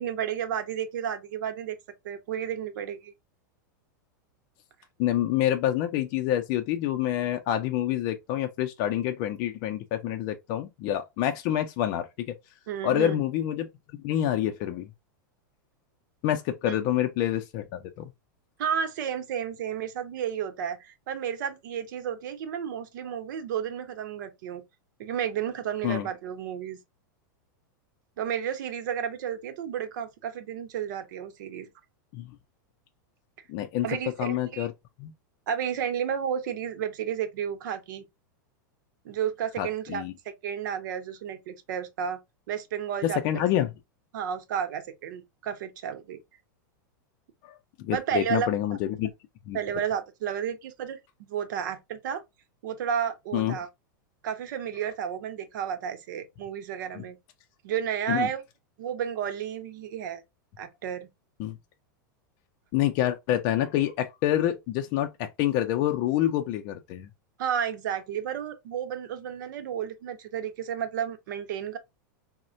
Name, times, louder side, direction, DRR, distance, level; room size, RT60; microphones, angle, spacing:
voice 1, 0.0-1.8 2.0-3.1 12.7-13.2 16.7-16.8 18.6-24.6 25.0-26.8 28.2-31.7 33.8-34.7 35.5-38.0 39.0-42.2 42.5-43.2 44.1-46.2 47.9-48.5 49.5-51.0 51.3-52.2 52.6-53.7 54.2-57.2 57.6-58.4 58.8-60.2 60.6-61.1 67.4-71.8, right 8 dB, 70° right, 0.8 m, -32 dB
voice 2, 5.0-12.3 12.8-13.7 14.0-14.9 16.2-18.1 25.8-26.1 32.1-32.3 33.5-33.9 34.2-34.7 35.0-35.1 39.6-40.1 43.0-43.7 47.4-49.1 49.5-49.6 53.3-53.6 58.1-58.3 61.4-61.6 62.7-67.1, left 12 dB, 45° left, 0.4 m, -27 dB
4.0 x 2.1 x 2.6 m
supercardioid pair, 150°, 11 cm